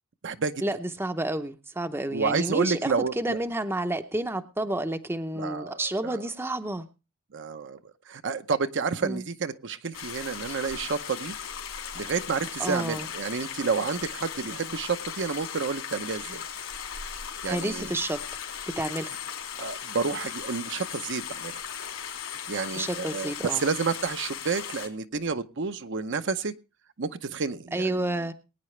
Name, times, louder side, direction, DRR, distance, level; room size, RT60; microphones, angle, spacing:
voice 1, 0.6-6.9 9.0-9.2 12.6-13.1 17.4-18.2 18.8-19.1 22.8-23.6 27.7-28.3, right 1 dB, 10° right, 8 dB, 0.7 m, -30 dB
voice 2, 2.1-3.4 5.4-6.2 7.3-7.8 8.1-11.3 11.9-16.5 17.4-17.9 19.6-21.6 22.5-26.5 27.0-28.2, right 5 dB, 55° right, 9 dB, 0.7 m, -30 dB
Stream, 9.9-24.9, left 8 dB, 75° left, 3.3 m, -37 dB
21.5 x 9.4 x 3.2 m, 0.30 s
head